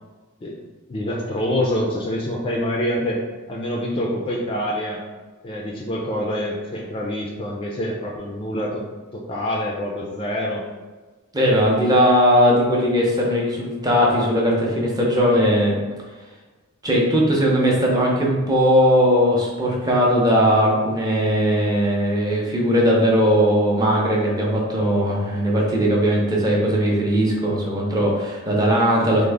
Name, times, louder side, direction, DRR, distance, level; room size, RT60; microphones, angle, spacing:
voice 1, 0.9-3.2 3.5-5.0 5.4-8.9 9.1-10.7, equal, 25° left, -2 dB, 0.3 m, -26 dB
voice 2, 11.3-15.8 16.8-29.3, equal, 20° right, -3 dB, 0.6 m, -19 dB
3.5 x 2.0 x 3.3 m, 1.3 s
head